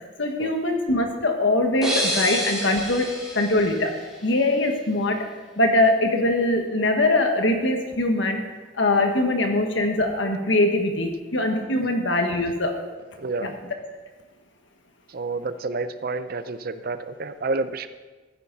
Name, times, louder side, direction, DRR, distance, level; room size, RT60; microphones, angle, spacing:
voice 1, 0.2-3.9 4.2-5.2 5.6-8.4 8.8-12.8 13.4-13.5, left 2 dB, 75° left, 4 dB, 1.6 m, -22 dB
sound 1, 1.8-4.6, equal, 5° right, 3.2 m, -29 dB
voice 2, 13.2-13.6 15.1-17.9, right 3 dB, 50° right, 12 dB, 0.6 m, -29 dB
14.5 x 9.8 x 4.1 m, 1.3 s
head